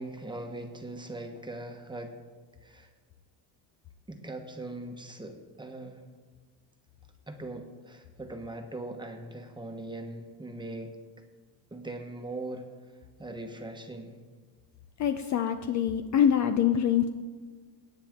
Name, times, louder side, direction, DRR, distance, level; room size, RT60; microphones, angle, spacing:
voice 1, 0.0-2.1 2.6-2.9 4.1-6.0 7.3-11.0 11.7-12.7 13.2-14.2, right 2 dB, 10° right, 4 dB, 1.1 m, -40 dB
voice 2, 15.0-17.1, left 9 dB, 40° left, 8 dB, 0.5 m, -25 dB
18.0 x 8.6 x 3.6 m, 1.5 s
cardioid pair, 145°, 47 cm